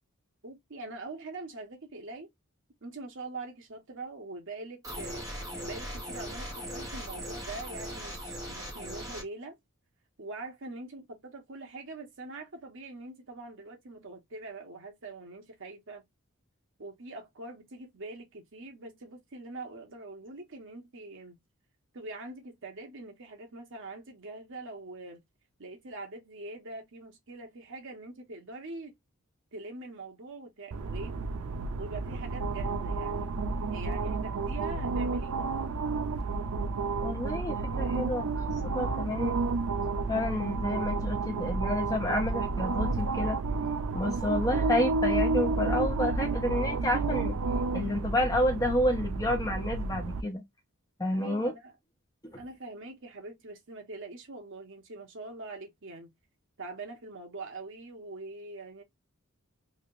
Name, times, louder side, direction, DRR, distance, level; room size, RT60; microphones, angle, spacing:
voice 1, 0.4-2.3 2.8-5.2 5.6-9.6 10.2-16.0 16.8-21.4 21.9-25.2 25.6-28.9 29.5-31.2 31.8-33.4 33.7-35.5 51.1-51.7 52.4-56.1 56.6-58.8, right 2 dB, 60° right, 1.1 m, -43 dB
sound 1, 4.8-9.2, equal, 15° right, 1.4 m, -39 dB
sound 2, 30.7-50.2, right 3 dB, 85° right, 0.5 m, -31 dB
voice 2, 37.0-38.3 38.6-39.4 40.1-43.4 43.9-47.4 47.7-50.4 51.0-51.5 52.2-52.4, left 1 dB, 15° left, 1.0 m, -30 dB
3.4 x 2.7 x 2.5 m
head